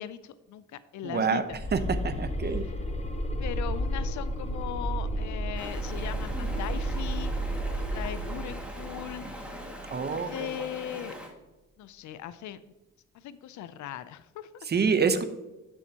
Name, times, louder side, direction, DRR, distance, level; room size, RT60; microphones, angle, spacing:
voice 1, 0.0-1.6 2.4-2.5 3.4-7.3 7.8-9.3 10.0-11.2 11.8-12.6 13.1-14.5, left 11 dB, 70° left, 15 dB, 0.5 m, -39 dB
voice 2, 1.0-1.4 1.7-2.6 9.9-10.6 14.7-15.2, right 5 dB, 35° right, 11 dB, 0.8 m, -27 dB
sound 1, 1.5-10.4, right 1 dB, 20° left, 0.9 m, -32 dB
Stream, 5.5-11.3, equal, 5° right, 2.0 m, -42 dB
11.0 x 7.2 x 2.9 m, 1.0 s
cardioid pair, 90°, 30 cm